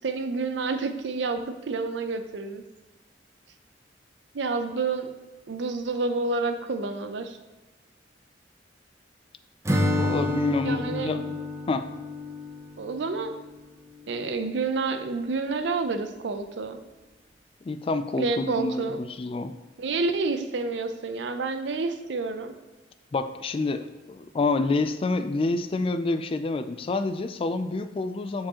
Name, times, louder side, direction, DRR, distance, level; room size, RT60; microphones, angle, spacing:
voice 1, 0.0-2.6 4.3-5.2 5.5-7.4 10.6-11.1 12.8-13.4 14.1-16.8 18.2-19.0 19.8-22.5, right 3 dB, 75° right, 8 dB, 0.5 m, -29 dB
Acoustic guitar / Strum, 9.6-13.6, left 1 dB, 15° right, 0.6 m, -29 dB
voice 2, 10.0-11.4 11.7-11.9 17.6-19.5 23.1-28.5, left 3 dB, 30° left, 10 dB, 0.3 m, -28 dB
7.2 x 4.7 x 2.9 m, 1.2 s
head